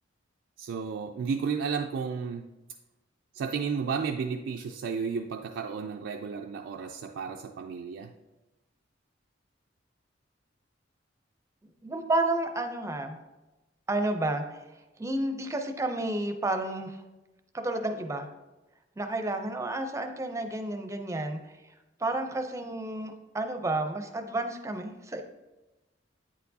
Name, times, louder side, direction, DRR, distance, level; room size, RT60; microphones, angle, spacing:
voice 1, 0.6-2.5 3.3-8.1, right 6 dB, 70° right, 3 dB, 0.3 m, -33 dB
voice 2, 11.8-13.2 13.9-14.6 15.0-17.0 17.5-18.3 19.0-21.4 22.0-25.2, right 2 dB, 15° right, 6 dB, 0.5 m, -31 dB
8.7 x 4.5 x 2.7 m, 1.1 s
head